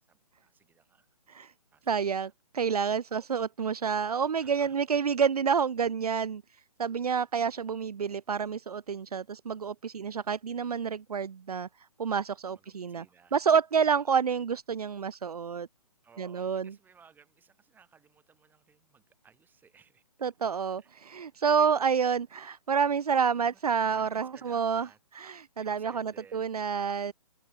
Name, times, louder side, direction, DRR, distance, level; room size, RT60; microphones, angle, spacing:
voice 1, 0.1-1.1 1.7-2.3 3.1-3.3 4.4-4.8 12.5-13.4 13.9-14.2 16.0-20.0 20.8-21.2 21.5-21.9 23.4-23.6 23.9-25.0 25.6-26.5, right 6 dB, 10° right, 5.4 m, -59 dB
voice 2, 1.9-6.4 6.8-11.7 12.0-13.0 13.3-15.7 16.2-16.7 20.2-24.9 25.2-27.1, right 6 dB, 70° right, 1.0 m, -28 dB
hypercardioid pair, 145°, 20 cm